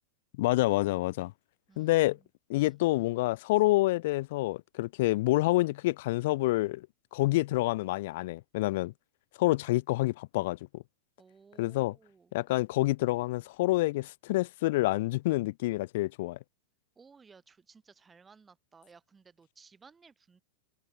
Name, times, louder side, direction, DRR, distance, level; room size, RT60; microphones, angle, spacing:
voice 1, 0.4-1.3 1.8-2.2 2.5-6.9 7.1-8.9 9.4-10.8 11.6-11.9 12.3-16.4, left 19 dB, 50° left, 0.3 m, -27 dB
voice 2, 1.7-2.3 2.5-2.8 11.2-12.6 17.0-20.4, right 5 dB, 10° right, 2.3 m, -58 dB
supercardioid pair, 165°, 0 cm